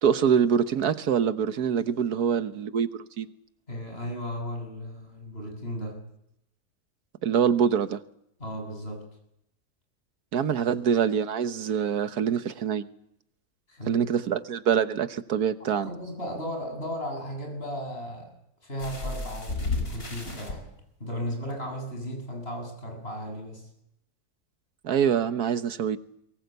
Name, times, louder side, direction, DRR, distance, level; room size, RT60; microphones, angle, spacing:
voice 1, 0.0-2.9 3.2-3.3 7.2-8.0 10.3-12.9 13.9-15.9 24.8-26.0, right 8 dB, 85° right, 11 dB, 1.6 m, -25 dB
voice 2, 3.7-6.1 8.4-9.1 13.7-14.1 15.8-18.3 18.6-20.7 21.0-23.7, equal, 40° left, 3 dB, 8.2 m, -35 dB
sound 1, 18.8-20.5 21.5-21.6 22.0-22.1, left 3 dB, 70° left, 5.5 m, -32 dB
23.5 x 20.0 x 8.1 m, 0.77 s
omnidirectional pair, 1.6 m